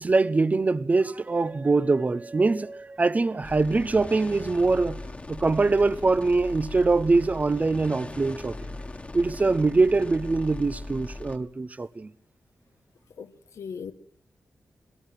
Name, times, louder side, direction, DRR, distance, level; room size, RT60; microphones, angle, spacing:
voice 1, 0.0-5.0 5.3-8.6 9.1-12.1, right 3 dB, 30° right, 0.8 m, -23 dB
sound 1, 3.4-11.4, left 2 dB, 25° left, 1.6 m, -39 dB
voice 2, 13.2-13.9, left 6 dB, 80° left, 1.3 m, -38 dB
26.5 x 18.0 x 7.6 m
wide cardioid pair, 100°, 5 cm